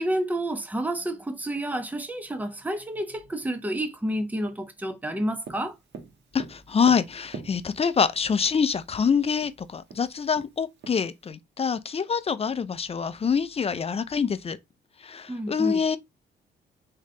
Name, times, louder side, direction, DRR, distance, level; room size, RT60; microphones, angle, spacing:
voice 1, 0.0-5.7 15.3-15.8, right 1 dB, 10° right, 0.8 m, -30 dB
Tap, 5.4-8.0 9.0-9.1 9.4-9.5 9.9-11.3, right 5 dB, 60° right, 1.3 m, -42 dB
voice 2, 6.3-14.6 15.0-16.0, left 6 dB, 30° left, 0.5 m, -25 dB
3.8 x 3.3 x 3.3 m
cardioid pair, 90°, 20 cm